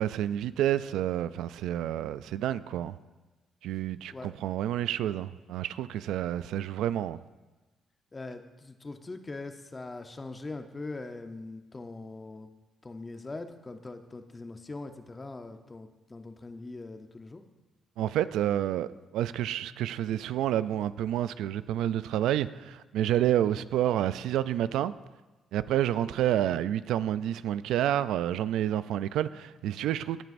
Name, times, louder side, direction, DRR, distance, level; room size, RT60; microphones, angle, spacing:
voice 1, 0.0-2.9 3.6-7.2 18.0-24.9 25.5-30.2, right 11 dB, 85° right, 0.3 m, -29 dB
voice 2, 8.1-12.5 12.8-17.4, left 3 dB, 25° left, 0.8 m, -42 dB
17.0 x 9.0 x 2.6 m
cardioid pair, 90°, 0 cm